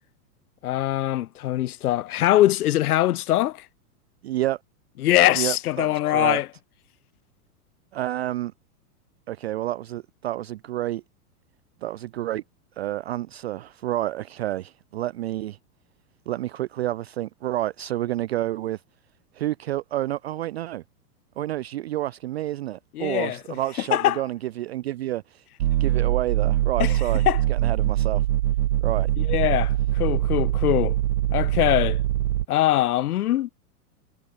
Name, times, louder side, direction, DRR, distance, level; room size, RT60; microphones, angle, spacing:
voice 1, 0.6-3.6 5.0-6.5 22.9-23.4 23.9-24.2 26.8-26.9 27.3-27.4 29.2-31.0 31.3-32.0 32.5-33.5, left 14 dB, 70° left, 1.2 m, -22 dB
voice 2, 4.2-4.6 5.3-6.4 7.9-8.5 9.3-11.0 11.8-12.4 12.8-15.6 16.3-18.8 19.3-20.8 21.4-25.4 25.8-27.2 27.5-28.2 28.8-29.1, right 14 dB, 45° right, 0.4 m, -29 dB
sound 1, 25.6-32.5, right 14 dB, 85° right, 0.9 m, -23 dB
supercardioid pair, 165°, 46 cm